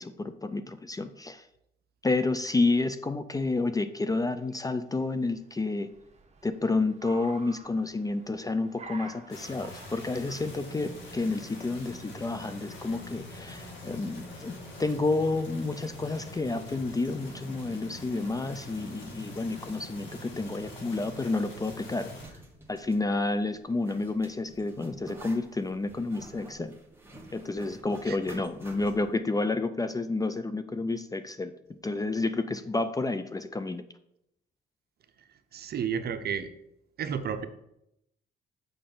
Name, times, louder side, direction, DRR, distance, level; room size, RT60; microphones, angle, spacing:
voice 1, 0.0-1.4 2.0-5.9 6.4-22.1 22.7-26.7 27.3-31.5 31.8-33.8, left 3 dB, 20° left, 11 dB, 0.4 m, -30 dB
Car, 3.8-13.7, right 4 dB, 35° right, 1.1 m, -52 dB
sound 1, 9.3-22.2, left 1 dB, 70° left, 2.2 m, -44 dB
Zipper (clothing), 21.9-29.1, right 1 dB, 10° right, 1.4 m, -50 dB
voice 2, 35.5-36.5 37.0-37.5, right 7 dB, 55° right, 10 dB, 0.7 m, -32 dB
6.7 x 5.3 x 3.8 m, 0.81 s
cardioid pair, 90°, 20 cm